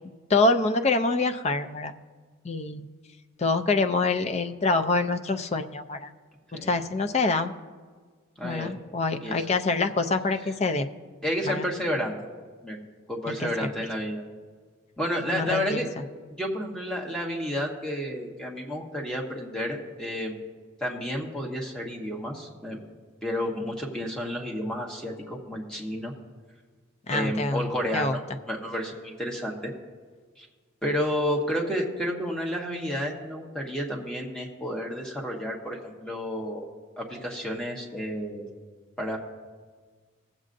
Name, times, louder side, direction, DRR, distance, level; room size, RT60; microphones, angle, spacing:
voice 1, 0.3-2.0 2.4-2.9 3.4-6.1 6.6-7.5 8.4-10.9 11.5-11.7 13.4-13.7 15.3-15.8 27.1-27.6 27.9-28.1, left 3 dB, 30° left, 8 dB, 0.4 m, -25 dB
voice 2, 8.4-8.7 9.2-9.5 11.2-12.1 12.6-12.8 13.1-14.2 15.0-15.9 16.4-20.3 20.8-22.8 23.2-26.1 27.1-28.2 28.5-29.7 30.4-30.5 30.8-36.7 37.0-38.4 39.0-39.2, equal, 5° left, -1 dB, 1.1 m, -31 dB
19.5 x 7.4 x 2.6 m, 1.5 s
head